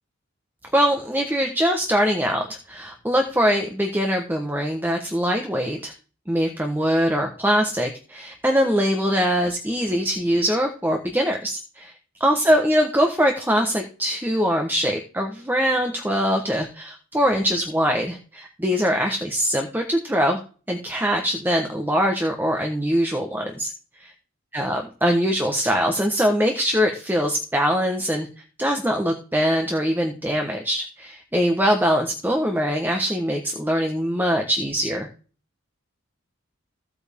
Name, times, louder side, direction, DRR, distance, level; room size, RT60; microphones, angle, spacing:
voice 1, 0.7-5.9 6.3-11.9 12.2-20.4 20.7-23.7 24.0-24.1 24.5-28.3 28.6-35.1, equal, 10° right, 3 dB, 1.3 m, -22 dB
15.5 x 8.4 x 3.7 m, 0.38 s
head